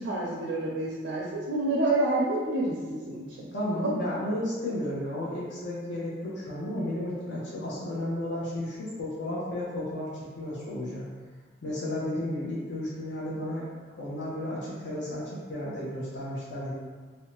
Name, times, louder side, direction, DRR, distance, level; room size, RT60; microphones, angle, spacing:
voice 1, 0.0-3.5 3.8-3.9, right 2 dB, 80° right, -4 dB, 0.5 m, -28 dB
voice 2, 3.5-11.0 11.6-13.7 14.0-16.7, left 1 dB, 70° left, -7 dB, 0.6 m, -33 dB
2.6 x 2.1 x 2.9 m, 1.5 s
head